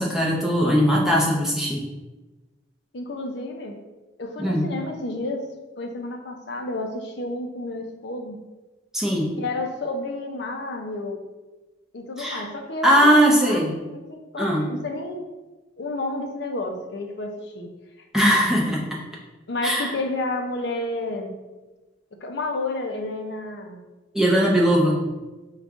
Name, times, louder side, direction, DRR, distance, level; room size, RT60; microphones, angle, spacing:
voice 1, 0.0-1.8 4.4-4.6 8.9-9.3 12.2-12.4 12.8-13.7 14.4-14.7 18.1-19.0 19.6-19.9 24.1-25.0, equal, 5° right, -4 dB, 0.6 m, -20 dB
voice 2, 2.9-3.8 4.2-5.5 5.8-8.4 9.4-11.2 11.9-13.6 13.9-15.3 15.8-17.7 19.5-21.3 22.2-23.8, left 2 dB, 55° left, 3 dB, 0.5 m, -31 dB
5.1 x 2.4 x 3.5 m, 1.2 s
head